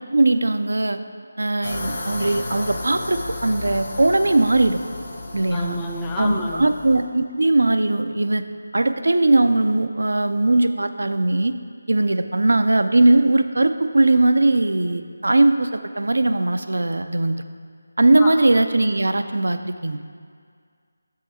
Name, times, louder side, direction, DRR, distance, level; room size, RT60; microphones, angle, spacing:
voice 1, 0.1-1.0 1.4-4.8 5.3-5.8 6.2-8.4 8.7-11.5 11.9-17.4 18.0-20.2, right 2 dB, 70° right, 9 dB, 0.3 m, -19 dB
sound 1, 1.6-7.0, left 2 dB, 35° left, 0.9 m, -33 dB
voice 2, 5.5-6.7 18.2-18.3, left 2 dB, 10° left, 0 dB, 0.4 m, -28 dB
6.5 x 3.6 x 4.4 m, 2.1 s
figure-of-eight pair, 160°, 0 cm